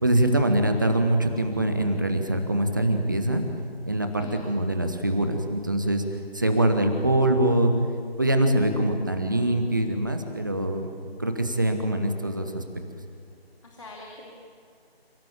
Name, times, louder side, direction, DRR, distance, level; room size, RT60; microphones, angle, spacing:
voice 1, 0.0-3.4 3.9-6.0 6.3-7.7 8.2-10.9 11.2-12.6, right 1 dB, 20° right, 6 dB, 1.2 m, -23 dB
voice 2, 4.2-4.5 13.6-14.3, left 2 dB, 30° left, -2 dB, 2.7 m, -44 dB
30.0 x 17.5 x 8.8 m, 2.3 s
figure-of-eight pair, 160°, 31 cm